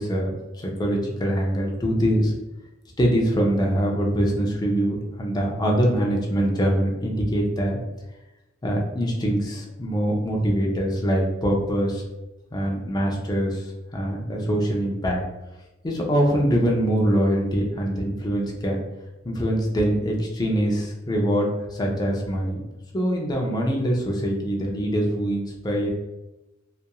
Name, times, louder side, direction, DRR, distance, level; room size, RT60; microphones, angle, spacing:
voice 1, 0.0-2.3 3.0-7.8 8.6-12.0 12.5-15.2 15.8-18.8 19.2-22.6 22.9-25.9, equal, 20° left, -1 dB, 0.4 m, -23 dB
2.8 x 2.4 x 2.2 m, 1.0 s
head